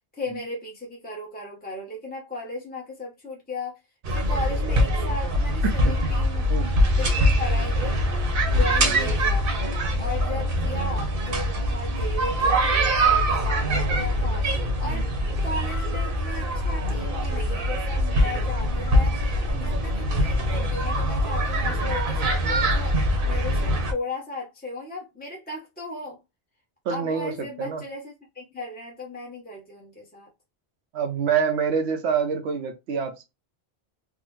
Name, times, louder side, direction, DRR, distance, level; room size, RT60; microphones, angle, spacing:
voice 1, 0.1-3.8 4.1-6.5 6.9-8.0 8.5-9.5 10.0-14.5 14.8-15.1 15.4-26.2 26.9-30.3, left 2 dB, 10° left, 0.6 m, -36 dB
sound 1, 4.0-23.9, equal, 60° right, 0.9 m, -23 dB
voice 2, 5.6-6.0 6.5-6.7 8.5-9.0 14.8-15.1 19.5-19.7 26.8-27.8 30.9-33.2, right 6 dB, 90° right, 0.8 m, -27 dB
3.5 x 2.0 x 3.0 m
omnidirectional pair, 1.1 m